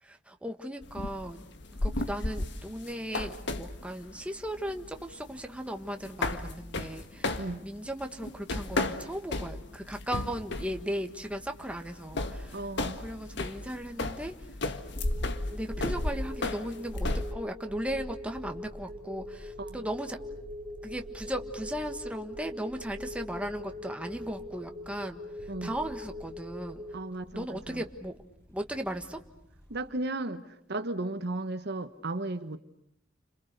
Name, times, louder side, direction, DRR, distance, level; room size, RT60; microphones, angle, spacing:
voice 1, 0.0-12.6 13.0-14.5 15.5-20.2 20.8-26.8 27.3-28.1 28.5-29.2, equal, 5° right, 5 dB, 1.5 m, -37 dB
sound 1, 0.8-17.3, left 2 dB, 65° left, 1.7 m, -34 dB
voice 2, 12.5-13.0 19.7-19.8 25.5-25.7 26.9-27.8 29.7-32.6, right 2 dB, 60° right, 10 dB, 1.2 m, -35 dB
sound 2, 14.9-26.9, left 1 dB, 30° right, 4.8 m, -43 dB
sound 3, 17.5-29.9 30.2-30.3, equal, 15° left, 4.8 m, -50 dB
30.0 x 26.5 x 6.7 m, 0.70 s
head